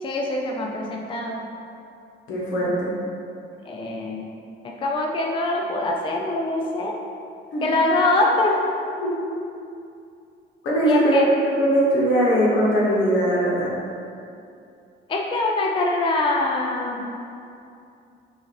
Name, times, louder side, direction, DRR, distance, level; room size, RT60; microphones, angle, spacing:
voice 1, 0.0-1.5 3.6-4.3 4.6-6.9 7.6-8.6 10.9-11.3 15.1-17.2, left 2 dB, 25° left, 0 dB, 0.4 m, -23 dB
voice 2, 2.3-2.9 7.5-7.6 9.0-9.1 10.6-11.2 11.6-13.7, equal, 75° left, -6 dB, 1.1 m, -20 dB
5.6 x 2.5 x 2.9 m, 2.5 s
cardioid pair, 90°, 20 cm